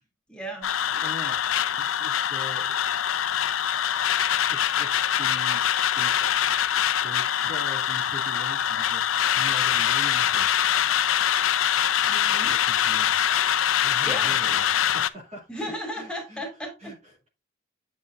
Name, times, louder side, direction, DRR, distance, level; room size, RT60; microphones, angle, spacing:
voice 1, 0.3-0.7 12.0-12.6 14.0-14.6 15.5-16.9, equal, 5° left, 2.7 m, -35 dB
sound 1, 0.6-15.1, left 10 dB, 85° left, 0.5 m, -24 dB
voice 2, 0.9-2.8 4.4-5.6 5.9-6.1 6.4-10.6 12.4-13.2 13.8-16.4 16.8-17.3, equal, 35° right, 2.3 m, -42 dB
8.6 x 7.3 x 2.5 m
head